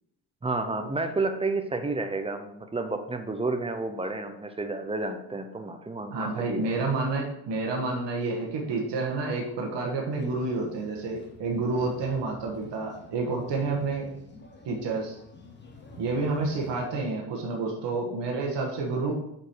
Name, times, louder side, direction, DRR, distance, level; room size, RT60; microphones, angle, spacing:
voice 1, 0.4-6.7, right 3 dB, 15° right, 7 dB, 0.5 m, -31 dB
voice 2, 6.1-14.1 14.6-15.2 16.0-19.1, right 3 dB, 90° right, 0 dB, 1.5 m, -29 dB
sound 1, 10.1-16.9, left 3 dB, 25° left, 1.0 m, -50 dB
8.3 x 5.0 x 4.5 m, 0.81 s
cardioid pair, 170°, 42 cm